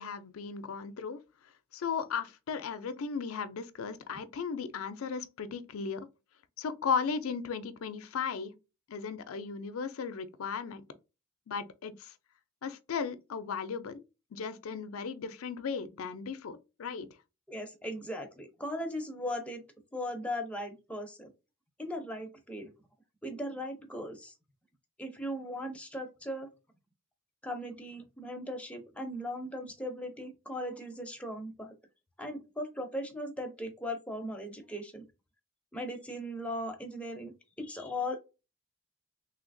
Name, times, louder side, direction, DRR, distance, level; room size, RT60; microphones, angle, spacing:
voice 1, 0.0-6.1 6.6-8.5 8.9-10.8 11.5-12.1 12.6-14.0 14.3-17.1, left 6 dB, 80° left, 0.4 m, -36 dB
voice 2, 17.5-19.6 19.9-21.3 21.8-22.7 23.2-24.3 25.0-26.5 27.4-31.7 32.2-35.0 35.7-38.2, left 1 dB, 5° left, 0.5 m, -38 dB
3.2 x 2.8 x 2.5 m
head